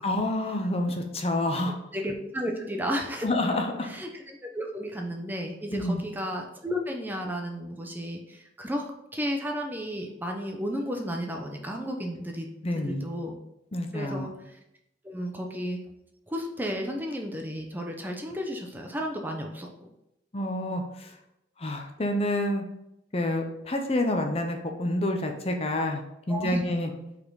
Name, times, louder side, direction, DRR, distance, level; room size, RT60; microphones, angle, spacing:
voice 1, 0.0-1.8 3.2-3.9 5.7-6.0 12.6-13.1 13.7-14.3 20.3-21.1 21.6-22.6 23.1-26.0 26.3-26.9, left 1 dB, 35° left, 4 dB, 0.7 m, -28 dB
voice 2, 1.9-3.3 3.8-12.5 12.8-13.4 13.9-14.6 15.0-15.8 16.3-19.9 26.3-26.6, equal, 10° right, 2 dB, 0.7 m, -33 dB
5.6 x 4.2 x 4.7 m, 0.85 s
head